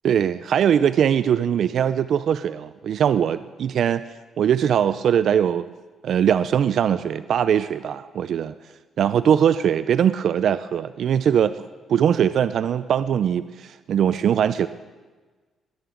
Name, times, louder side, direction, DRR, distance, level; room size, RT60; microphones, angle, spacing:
voice 1, 0.0-4.0 4.4-5.7 6.0-8.5 9.0-11.6 11.9-14.7, right 9 dB, 65° right, 14 dB, 0.4 m, -21 dB
20.0 x 11.0 x 3.8 m, 1.3 s
cardioid pair, 90°, 0 cm